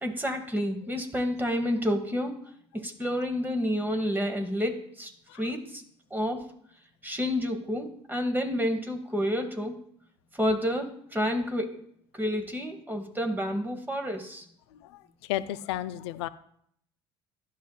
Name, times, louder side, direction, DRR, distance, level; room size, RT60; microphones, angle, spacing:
voice 1, 0.0-2.3 2.7-5.1 5.4-5.8 6.1-6.4 7.0-9.7 10.3-11.8 12.1-14.4, equal, 15° right, 5 dB, 1.4 m, -29 dB
voice 2, 14.8-16.3, left 14 dB, 80° left, 14 dB, 0.4 m, -33 dB
11.5 x 5.6 x 2.4 m, 0.68 s
hypercardioid pair, 65°, 14 cm